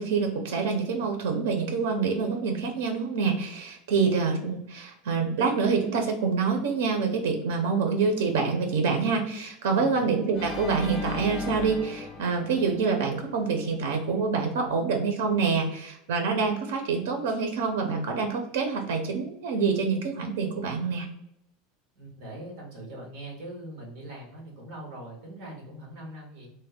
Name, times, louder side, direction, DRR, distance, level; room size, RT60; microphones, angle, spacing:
voice 1, 0.0-21.1, right 5 dB, 90° right, 4 dB, 0.6 m, -26 dB
Organ, 10.3-13.5, left 1 dB, 25° left, 0.5 m, -37 dB
voice 2, 21.9-26.5, right 1 dB, 40° right, -1 dB, 1.3 m, -42 dB
3.2 x 2.1 x 3.5 m, 0.78 s
supercardioid pair, 175°, 0 cm